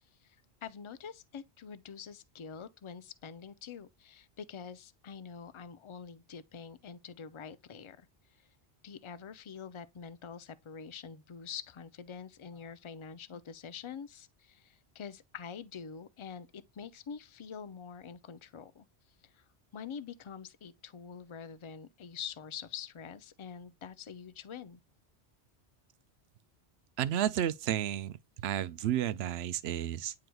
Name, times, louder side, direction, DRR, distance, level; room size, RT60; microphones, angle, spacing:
voice 1, 0.6-8.5 8.8-18.9 19.2-19.5 19.7-24.8, left 7 dB, 40° left, 0.4 m, -46 dB
voice 2, 27.0-30.1, right 11 dB, 70° right, 0.8 m, -32 dB
9.2 x 4.8 x 2.3 m
omnidirectional pair, 1.1 m